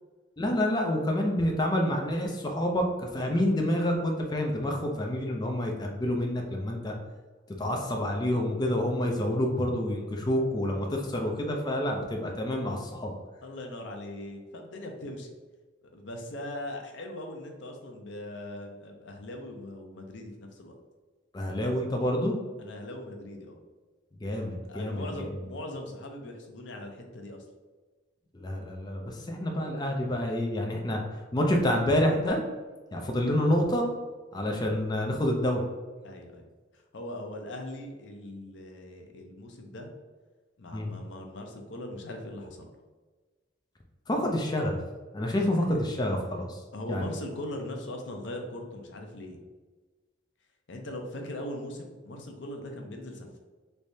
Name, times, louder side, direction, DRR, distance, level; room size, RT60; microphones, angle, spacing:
voice 1, 0.4-6.9 7.6-13.1 21.3-22.3 24.2-25.1 28.3-31.0 31.3-32.4 32.9-33.9 34.3-35.6 40.7-40.9 44.1-44.8 45.1-46.6 46.9-47.1, left 1 dB, 20° left, 1 dB, 0.4 m, -28 dB
voice 2, 13.4-15.3 15.9-20.8 22.6-23.6 24.3-24.4 24.7-27.4 36.0-39.9 40.6-42.7 45.3-45.9 46.7-49.4 50.7-53.4, left 1 dB, 65° left, 3 dB, 0.6 m, -40 dB
3.3 x 3.2 x 2.7 m, 1.3 s
head